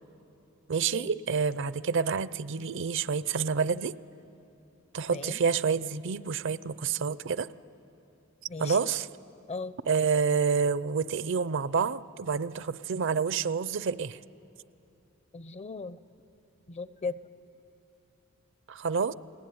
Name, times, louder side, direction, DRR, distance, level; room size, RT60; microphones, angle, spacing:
voice 1, 0.7-3.9 4.9-7.5 8.6-9.1 9.8-14.2 18.7-19.1, right 5 dB, 60° right, 16 dB, 0.6 m, -28 dB
voice 2, 8.5-8.9 9.5-9.7 15.3-16.0 16.7-17.2, left 4 dB, 30° left, 15 dB, 0.6 m, -37 dB
29.5 x 21.0 x 9.5 m, 2.9 s
head